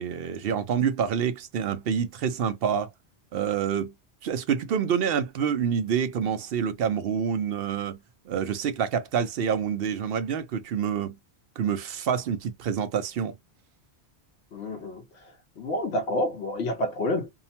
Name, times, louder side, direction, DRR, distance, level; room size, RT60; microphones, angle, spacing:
voice 1, 0.0-2.9 3.3-3.9 4.2-8.0 8.3-11.2 11.6-13.3, right 7 dB, 65° right, 0.7 m, -27 dB
voice 2, 14.5-17.3, left 1 dB, 80° left, 0.9 m, -29 dB
2.7 x 2.0 x 2.8 m
omnidirectional pair, 1.1 m